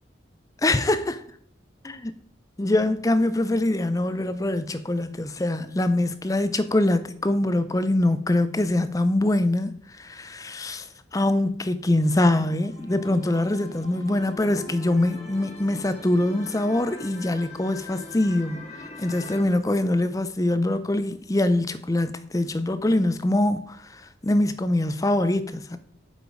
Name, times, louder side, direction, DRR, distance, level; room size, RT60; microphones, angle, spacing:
voice 1, 0.6-1.2 1.8-2.2 2.6-25.8, left 1 dB, 20° left, 0.5 m, -24 dB
sound 1, 12.0-19.4, left 2 dB, 35° left, 1.6 m, -42 dB
7.9 x 5.0 x 5.0 m
head